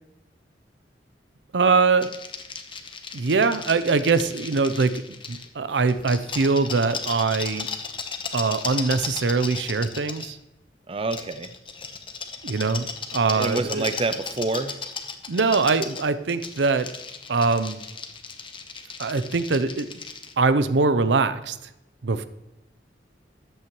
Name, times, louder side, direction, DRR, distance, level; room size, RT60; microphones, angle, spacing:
voice 1, 1.5-2.1 3.1-5.0 5.3-7.7 8.3-10.4 12.4-12.9 13.1-13.8 15.3-16.9 17.3-17.8 19.0-20.0 20.4-21.6 22.0-22.2, right 4 dB, 80° right, 12 dB, 0.6 m, -22 dB
sound 1, 2.0-5.5 5.9-10.3 11.1-20.3, left 5 dB, 30° left, 0.9 m, -36 dB
voice 2, 10.9-11.5 13.3-14.8, right 3 dB, 35° right, 10 dB, 0.6 m, -27 dB
13.5 x 8.8 x 3.1 m, 0.92 s
head